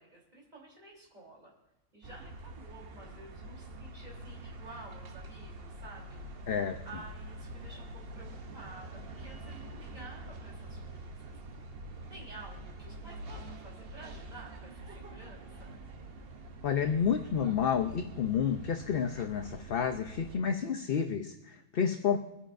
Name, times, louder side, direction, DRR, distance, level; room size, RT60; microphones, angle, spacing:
voice 1, 0.0-1.5 1.9-6.3 6.8-11.4 12.1-15.8, right 2 dB, 35° right, -3 dB, 3.5 m, -51 dB
sound 1, 2.0-20.4, right 2 dB, 50° right, 1.0 m, -46 dB
voice 2, 6.5-6.8 16.6-22.2, left 7 dB, 55° left, 6 dB, 0.8 m, -30 dB
23.0 x 9.9 x 2.6 m, 0.90 s
omnidirectional pair, 1.4 m